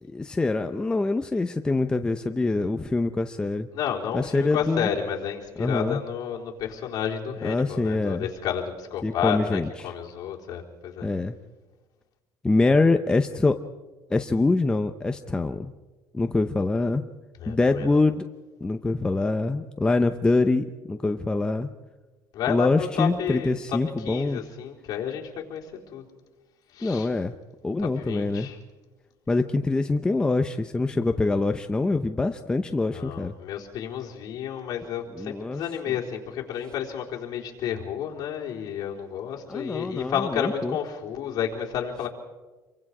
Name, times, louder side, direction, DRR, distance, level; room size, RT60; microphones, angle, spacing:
voice 1, 0.0-3.7 4.1-4.9 5.6-6.0 7.4-8.3 9.0-9.7 11.0-11.4 12.4-13.6 14.1-15.7 16.1-17.0 17.5-18.2 18.6-21.7 22.5-24.4 26.8-27.3 27.6-28.5 29.3-33.3 35.1-36.0 39.5-40.8, left 3 dB, 10° left, 7 dB, 0.7 m, -24 dB
voice 2, 3.7-11.1 17.4-18.0 22.3-26.0 26.7-27.1 27.8-28.6 32.9-42.1, left 8 dB, 55° left, -1 dB, 4.0 m, -31 dB
27.5 x 23.5 x 4.9 m, 1.2 s
cardioid pair, 150°, 8 cm